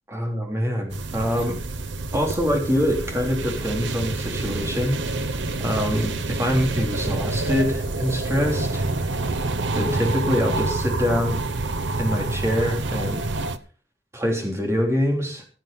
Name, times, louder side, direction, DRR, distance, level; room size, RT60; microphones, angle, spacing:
voice 1, 0.1-1.6 2.1-5.3 5.6-8.9 9.7-11.4 12.0-13.3 14.1-15.4, equal, 15° right, 1 dB, 3.3 m, -25 dB
sound 1, 0.9-13.6, right 2 dB, 80° right, 0.9 m, -27 dB
16.5 x 7.6 x 5.3 m, 0.41 s
head